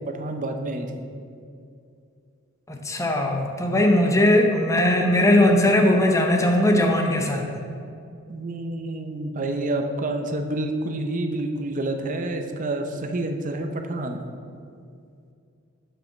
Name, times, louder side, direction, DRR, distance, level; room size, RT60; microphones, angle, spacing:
voice 1, 0.1-0.9 8.3-14.2, right 2 dB, 40° right, 5 dB, 0.5 m, -28 dB
voice 2, 2.7-7.5, left 1 dB, 15° left, 2 dB, 0.7 m, -19 dB
5.5 x 5.1 x 5.7 m, 2.4 s
head